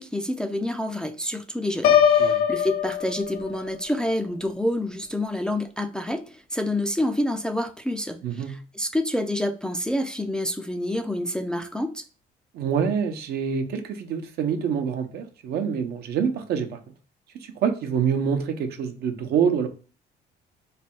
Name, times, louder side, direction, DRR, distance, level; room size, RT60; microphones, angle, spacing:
voice 1, 0.0-12.0, left 1 dB, 5° left, 0.3 m, -28 dB
Piano, 1.8-3.8, left 8 dB, 65° left, 0.5 m, -21 dB
voice 2, 8.2-8.5 12.5-16.8 17.4-19.7, right 7 dB, 70° right, 0.7 m, -26 dB
3.2 x 2.2 x 4.3 m
cardioid pair, 110°, 17 cm